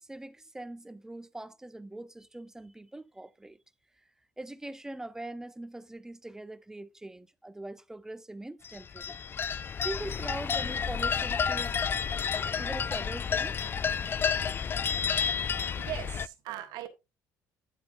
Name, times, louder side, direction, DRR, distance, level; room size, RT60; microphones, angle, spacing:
voice 1, 0.0-3.6 4.4-9.2 9.8-11.8 12.6-13.6, right 1 dB, 10° right, 0.7 m, -42 dB
sound 1, 8.6-16.3, left 7 dB, 30° left, 0.3 m, -30 dB
voice 2, 15.7-16.9, right 13 dB, 75° right, 1.4 m, -39 dB
9.2 x 8.6 x 2.6 m
supercardioid pair, 95°, 7 cm